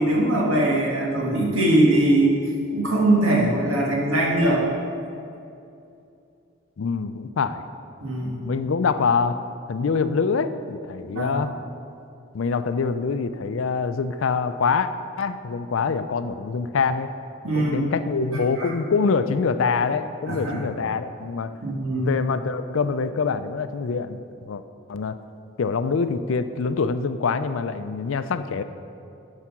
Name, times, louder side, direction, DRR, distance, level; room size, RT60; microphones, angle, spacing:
voice 1, 0.0-2.4 2.7-4.6 8.0-8.5 11.0-11.4 17.4-17.9 18.6-18.7 20.3-20.6 21.6-22.1, right 1 dB, 85° right, -3 dB, 1.9 m, -21 dB
voice 2, 6.8-7.6 8.4-9.4 9.7-11.5 12.3-14.9 15.2-17.1 17.5-21.5 21.9-24.6 24.9-25.2 25.6-28.6, left 5 dB, 75° left, 11 dB, 0.4 m, -25 dB
11.0 x 4.9 x 6.0 m, 2.6 s
head